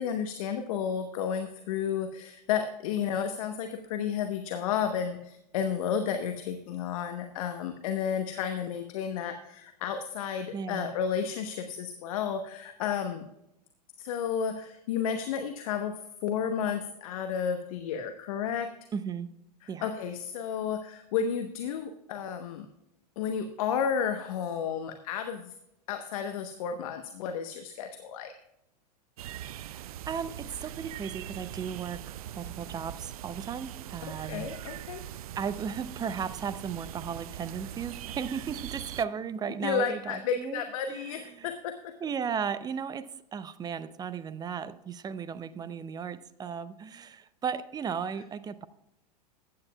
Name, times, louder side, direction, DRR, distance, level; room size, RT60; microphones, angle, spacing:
voice 1, 0.0-13.2 14.0-18.7 19.8-22.7 23.2-25.5 25.9-28.3 34.3-35.0 39.6-41.7, left 7 dB, 55° left, 7 dB, 1.1 m, -32 dB
voice 2, 10.5-10.9 18.9-19.3 19.7-19.9 29.4-34.5 35.4-40.6 40.9-41.5 42.0-48.7, right 7 dB, 20° right, 15 dB, 0.6 m, -36 dB
sound 1, 29.2-39.0, right 12 dB, 60° right, 0.5 m, -41 dB
15.0 x 9.6 x 2.3 m, 0.84 s
figure-of-eight pair, 95°, 21 cm